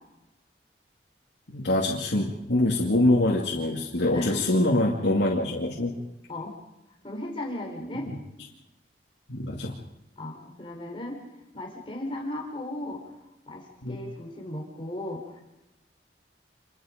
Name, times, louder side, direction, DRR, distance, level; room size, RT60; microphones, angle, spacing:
voice 1, 1.5-5.9 8.1-8.2 9.3-9.7 13.8-14.0, left 1 dB, 90° left, -3 dB, 2.4 m, -24 dB
voice 2, 4.1-4.4 6.3-6.6 7.0-8.1 10.2-11.2 11.5-13.1 13.5-15.4, left 1 dB, 30° left, 1 dB, 4.1 m, -36 dB
27.5 x 22.0 x 5.2 m, 0.96 s
head